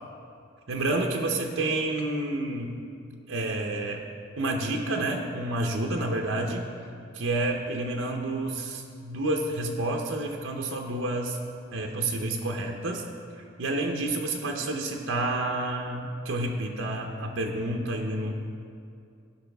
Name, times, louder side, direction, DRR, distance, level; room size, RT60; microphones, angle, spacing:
voice 1, 0.7-2.8 3.3-4.0 4.4-6.6 7.1-11.4 11.7-13.0 13.4-18.3, right 2 dB, 90° right, 2 dB, 0.7 m, -29 dB
16.0 x 5.6 x 3.4 m, 2.5 s
head